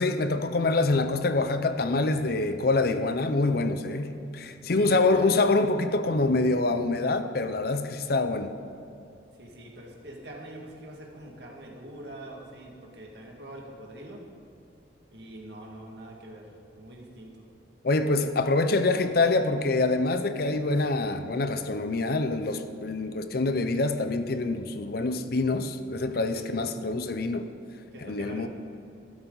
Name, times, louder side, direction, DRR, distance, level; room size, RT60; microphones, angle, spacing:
voice 1, 0.0-8.5 17.8-27.5 28.0-28.5, left 3 dB, 55° left, 0.6 m, -25 dB
voice 2, 4.6-5.3 9.4-14.2 15.1-16.5 16.8-17.5 26.3-26.5 27.9-28.5, right 1 dB, 65° right, 2.0 m, -44 dB
13.0 x 13.0 x 4.0 m
head